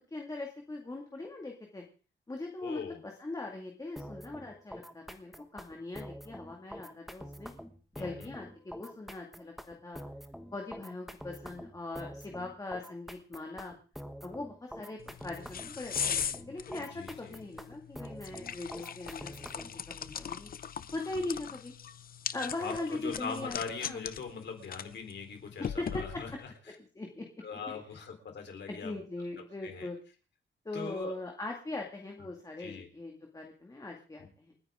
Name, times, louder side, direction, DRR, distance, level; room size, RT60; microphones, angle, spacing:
voice 1, 0.1-1.8 2.3-7.5 7.9-10.0 10.5-13.7 14.2-20.5 20.9-21.7 22.3-23.6 23.8-24.0 25.8-26.2 26.8-27.3 27.9-28.0 28.7-30.0 30.7-34.5, left 2 dB, 20° left, 1 dB, 2.2 m, -40 dB
voice 2, 2.6-3.0 8.0-8.3 16.7-17.4 21.1-21.2 22.6-26.3 27.4-28.9 29.6-29.9 30.7-31.1 32.2-32.3 32.6-32.9 34.2-34.3, left 5 dB, 65° left, 4 dB, 3.9 m, -41 dB
sound 1, 4.0-19.8, equal, ahead, 1.3 m, -46 dB
sound 2, 15.0-26.5, left 8 dB, 50° left, 0.7 m, -40 dB
29.0 x 10.0 x 3.8 m, 0.38 s
wide cardioid pair, 155°, 20 cm